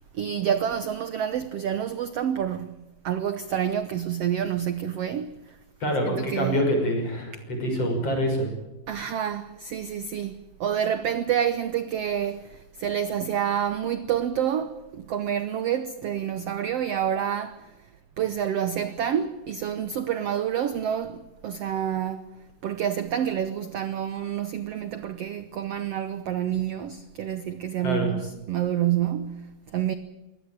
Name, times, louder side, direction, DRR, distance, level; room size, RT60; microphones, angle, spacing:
voice 1, 0.1-5.6 6.0-6.7 8.9-17.7 18.2-22.2 22.6-29.9, right 9 dB, 90° right, 1.3 m, -28 dB
voice 2, 5.8-8.5 27.8-28.1, equal, 40° left, 6.8 m, -25 dB
23.5 x 18.0 x 8.8 m
omnidirectional pair, 4.1 m